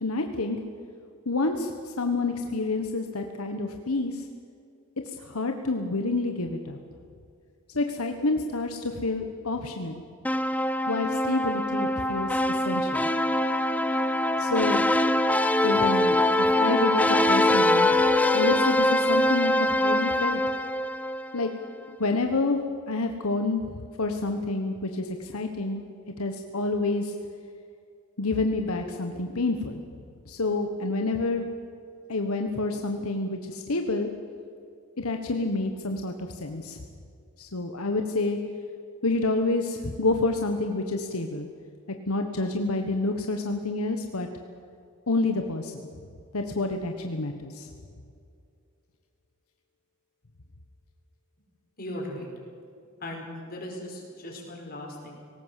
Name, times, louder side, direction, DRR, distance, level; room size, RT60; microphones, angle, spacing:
voice 1, 0.0-0.6 1.2-4.2 5.2-6.8 7.7-10.0 10.9-13.1 14.4-14.8 15.6-17.9 18.3-20.4 21.3-21.5 22.0-22.6 22.9-23.6 24.0-25.8 26.2-27.1 28.2-29.8 30.3-31.5 32.1-34.1 35.0-36.8 37.4-38.4 39.0-41.5 42.1-44.3 45.1-45.7 46.3-47.7, left 3 dB, 80° left, 5 dB, 1.3 m, -28 dB
sound 1, 10.2-21.5, left 1 dB, 5° left, 0.6 m, -23 dB
voice 2, 51.8-52.3 53.0-55.1, left 1 dB, 45° left, 0 dB, 5.2 m, -38 dB
19.0 x 18.0 x 8.3 m, 2.4 s
head